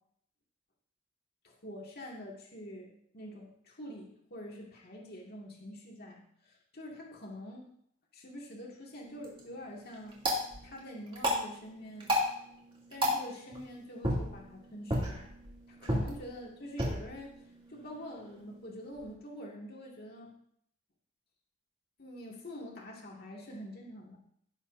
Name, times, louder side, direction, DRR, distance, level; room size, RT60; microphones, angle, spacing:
voice 1, 1.4-7.7 8.1-10.2 10.6-12.1 12.9-15.3 15.7-17.4 17.7-20.3 22.0-24.2, equal, 45° left, -2 dB, 2.1 m, -46 dB
sound 1, 9.0-19.1, equal, 25° right, 2.6 m, -35 dB
16.5 x 7.3 x 2.7 m, 0.68 s
head